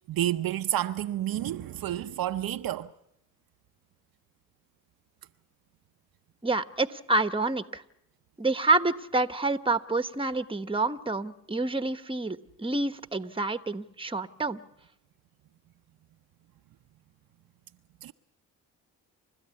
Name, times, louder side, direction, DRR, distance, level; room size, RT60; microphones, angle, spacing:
voice 1, 0.1-2.9 18.0-18.1, right 12 dB, 60° right, 0.8 m, -30 dB
voice 2, 6.4-7.8 8.4-14.6, right 2 dB, 15° right, 1.2 m, -28 dB
29.5 x 13.0 x 8.4 m
supercardioid pair, 55°, 39 cm